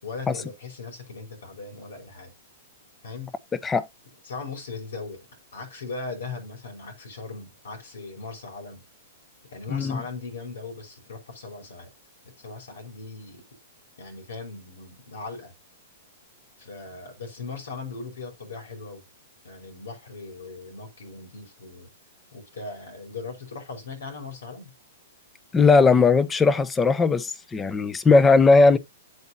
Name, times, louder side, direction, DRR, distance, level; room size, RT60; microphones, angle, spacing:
voice 1, 0.0-2.3 3.0-3.3 4.2-5.3 5.5-8.8 9.5-11.9 12.4-13.4 14.0-15.5 16.6-19.0 19.4-21.9 22.3-24.7, left 4 dB, 80° left, 5.5 m, -38 dB
voice 2, 9.7-10.0 25.5-28.8, left 4 dB, 15° left, 0.9 m, -18 dB
8.4 x 8.2 x 2.8 m
hypercardioid pair, 140°, 0 cm